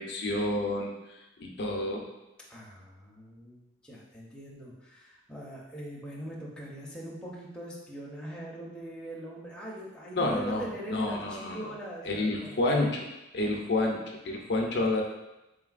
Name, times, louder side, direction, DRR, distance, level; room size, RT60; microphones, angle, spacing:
voice 1, 0.0-2.0 10.2-11.7 12.0-13.1 13.3-15.0, left 2 dB, 55° left, 0 dB, 0.5 m, -29 dB
voice 2, 2.5-12.6, right 1 dB, 5° left, -5 dB, 0.6 m, -42 dB
3.9 x 3.9 x 2.4 m, 0.97 s
head